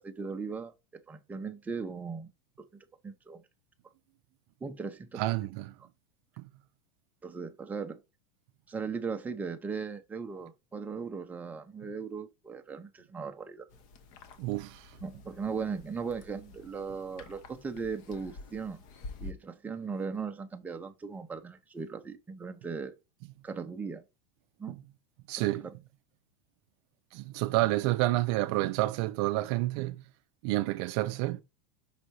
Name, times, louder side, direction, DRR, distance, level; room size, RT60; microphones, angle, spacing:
voice 1, 0.0-2.3 2.6-3.4 4.6-5.2 7.2-8.0 8.7-13.7 15.0-18.8 19.2-23.0 23.4-24.0 24.6-24.8 25.4-25.5, right 5 dB, 10° right, 0.6 m, -38 dB
voice 2, 5.1-5.8 6.4-6.5 14.4-15.0 24.7-24.8 25.3-25.7 27.1-30.0 30.4-31.4, right 18 dB, 50° right, 0.4 m, -29 dB
Drinking & swallowing soup, 13.7-19.3, left 2 dB, 45° left, 1.1 m, -49 dB
5.6 x 4.0 x 4.5 m
supercardioid pair, 150°, 18 cm